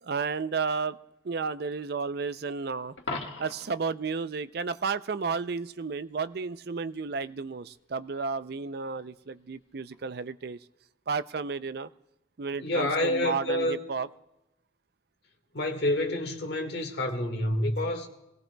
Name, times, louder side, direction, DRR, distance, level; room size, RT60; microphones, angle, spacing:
voice 1, 0.0-1.0 1.2-3.0 3.4-10.6 11.1-11.9 12.4-14.1, right 5 dB, 55° right, 0.5 m, -32 dB
Coin (dropping), 3.0-3.8 9.9-10.1, left 3 dB, 80° left, 1.6 m, -37 dB
voice 2, 12.6-13.8 15.5-18.1, left 1 dB, 60° left, 1.8 m, -28 dB
26.0 x 17.0 x 2.3 m
head